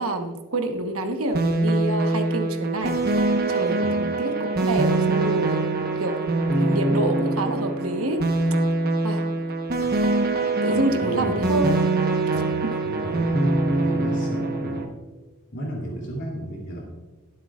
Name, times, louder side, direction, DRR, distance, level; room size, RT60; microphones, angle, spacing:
voice 1, 0.0-3.0 3.5-5.6 6.0-6.2 6.5-8.2 9.0-9.3 10.6-11.7 12.6-12.7, right 1 dB, 70° right, 5 dB, 1.2 m, -27 dB
sound 1, 1.3-14.8, right 2 dB, 45° right, 1.1 m, -23 dB
voice 2, 10.7-11.6 12.3-12.5 12.8-14.9 15.5-16.8, right 1 dB, 55° left, -3 dB, 3.0 m, -33 dB
22.5 x 7.9 x 2.5 m, 1.3 s
head